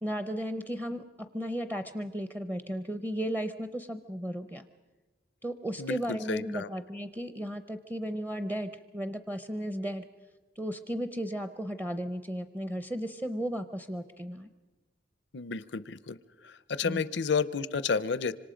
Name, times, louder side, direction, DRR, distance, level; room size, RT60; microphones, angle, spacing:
voice 1, 0.0-4.6 5.4-10.1 10.6-14.5 16.8-17.0, equal, 15° right, 10 dB, 0.6 m, -35 dB
voice 2, 5.8-6.7 15.3-16.2 16.4-18.3, left 5 dB, 75° left, 16 dB, 0.6 m, -31 dB
26.0 x 25.5 x 5.1 m, 1.2 s
head